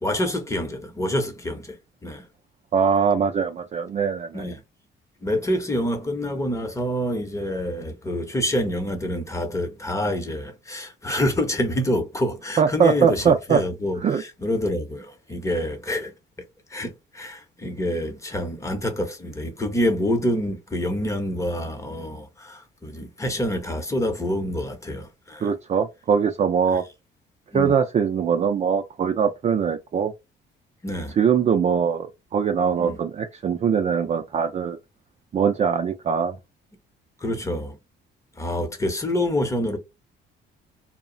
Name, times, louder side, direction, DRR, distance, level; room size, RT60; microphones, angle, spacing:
voice 1, 0.0-2.3 4.3-4.6 5.2-16.1 16.7-25.5 27.5-27.7 30.8-31.2 32.8-33.0 37.2-37.8 38.4-39.8, left 1 dB, 15° left, 0.8 m, -27 dB
voice 2, 2.7-4.5 12.6-13.6 14.0-14.2 25.4-26.8 27.5-30.1 31.2-34.8 35.3-36.4, right 7 dB, 35° right, 0.4 m, -22 dB
2.3 x 2.1 x 3.7 m
cardioid pair, 105°, 20 cm